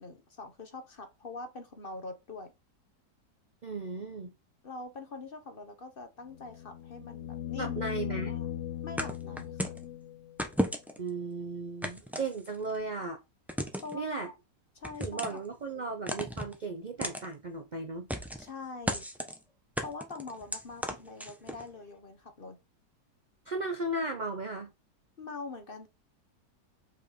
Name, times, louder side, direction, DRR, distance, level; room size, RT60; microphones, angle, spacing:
voice 1, 0.0-2.5 4.6-7.8 8.3-8.5 8.8-9.7 13.8-14.3 14.7-15.2 15.7-15.9 18.4-19.1 19.8-22.6 25.2-25.9, left 3 dB, 35° left, 1.1 m, -43 dB
voice 2, 3.6-4.3 7.6-8.4 11.0-13.2 13.9-14.3 15.0-18.1 23.5-24.7, right 3 dB, 70° right, 0.4 m, -36 dB
sound 1, 6.3-10.4 12.8-12.9, left 11 dB, 65° left, 0.9 m, -38 dB
sound 2, 9.0-9.8 10.4-11.1 11.8-12.8 13.5-14.0 14.8-15.5 16.1-16.6 17.0-17.3 18.1-18.5 18.9-19.4 19.8-21.6, equal, ahead, 0.4 m, -34 dB
5.4 x 4.8 x 4.2 m
omnidirectional pair, 1.8 m